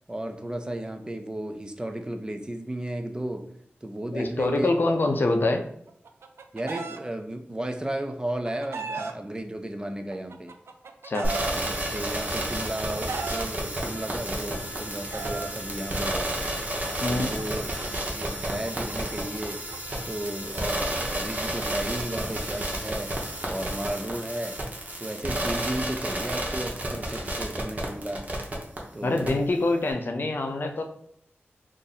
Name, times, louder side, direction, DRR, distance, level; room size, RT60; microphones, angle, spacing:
voice 1, 0.1-3.5 3.8-4.9 6.5-10.6 11.5-16.5 17.1-17.7 18.0-19.6 20.0-23.1 23.5-24.6 25.0-28.3 28.9-29.3, right 1 dB, 20° right, 6 dB, 0.4 m, -34 dB
voice 2, 4.1-5.6 11.0-11.3 17.0-17.3 29.0-30.8, left 2 dB, 55° left, 5 dB, 0.5 m, -25 dB
Chicken rooster, 5.9-7.0 8.1-9.1 10.1-11.5 12.4-13.5 14.5-15.5 16.6-20.0, right 5 dB, 85° right, 0.3 m, -37 dB
sound 1, 11.2-28.8 29.2-29.3, right 1 dB, 40° right, 0.8 m, -31 dB
2.7 x 2.5 x 4.0 m, 0.68 s
wide cardioid pair, 75°, 4 cm